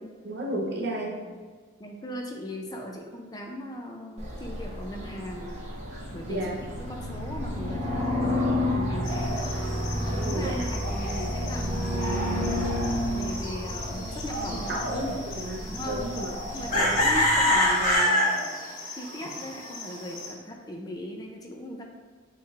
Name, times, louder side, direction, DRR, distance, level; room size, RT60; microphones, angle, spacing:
voice 1, 0.2-1.2 6.3-6.6 10.2-10.7 14.7-15.1 15.4-16.3 16.7-17.1, right 1 dB, 55° right, -1 dB, 0.8 m, -32 dB
voice 2, 1.8-5.6 6.1-9.5 9.9-12.7 13.1-15.2 15.7-16.1 16.5-18.5 19.0-21.8, left 1 dB, 20° left, 2 dB, 0.4 m, -38 dB
sound 1, 4.2-17.9, left 1 dB, 35° right, 1.1 m, -31 dB
sound 2, 9.0-20.3, left 1 dB, 45° left, 1.2 m, -29 dB
7.0 x 3.0 x 2.4 m, 1.5 s
head